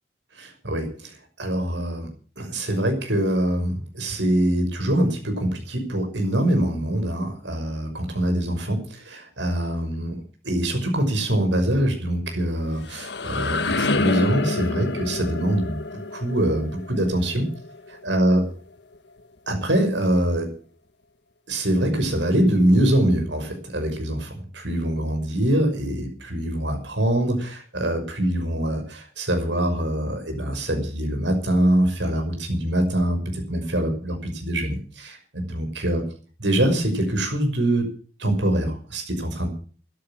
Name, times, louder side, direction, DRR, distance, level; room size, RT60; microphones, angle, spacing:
voice 1, 0.4-2.1 2.4-17.5 18.0-18.4 19.5-20.5 21.5-36.0 36.4-37.9 38.2-39.5, right 1 dB, 80° right, 5 dB, 6.1 m, -24 dB
sound 1, 12.5-18.3, left 3 dB, 70° left, 1.4 m, -28 dB
14.0 x 11.5 x 7.4 m, 0.41 s
head